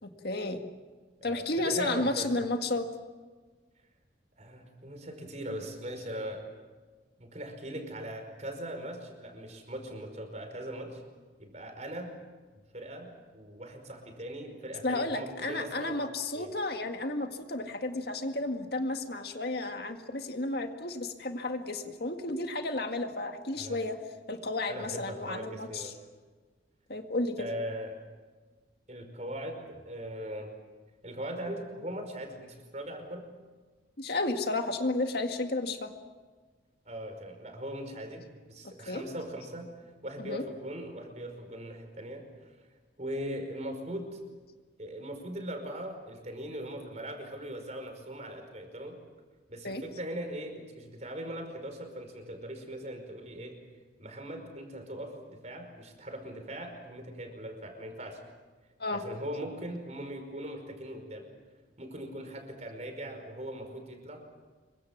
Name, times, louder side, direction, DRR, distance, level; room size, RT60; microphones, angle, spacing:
voice 1, 0.0-0.6 1.2-2.9 14.8-24.0 24.3-25.9 26.9-27.5 34.0-35.9 38.9-39.0 40.2-40.4 49.6-49.8 58.8-59.0, left 2 dB, 55° left, 5 dB, 2.0 m, -32 dB
voice 2, 1.2-2.5 4.4-6.5 7.2-11.0 11.4-12.2 12.7-16.0 16.3-16.5 23.6-23.8 24.7-25.9 27.4-28.0 28.9-30.5 31.0-33.2 36.9-39.7 40.0-42.5 43.0-44.2 44.8-49.0 49.5-53.6 54.0-58.2 58.9-61.3 61.8-64.3, right 1 dB, 35° right, 5 dB, 5.2 m, -40 dB
27.0 x 24.0 x 7.5 m, 1.4 s
head